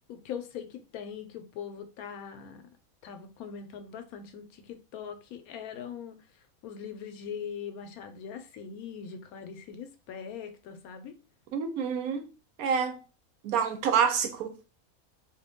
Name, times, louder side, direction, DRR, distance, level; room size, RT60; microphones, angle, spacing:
voice 1, 0.1-2.6 3.0-6.2 6.6-11.1, left 7 dB, 80° left, 1.1 m, -41 dB
voice 2, 11.5-12.3 12.6-13.0 13.4-14.5, right 7 dB, 80° right, 1.1 m, -27 dB
3.0 x 2.6 x 3.5 m
omnidirectional pair, 1.5 m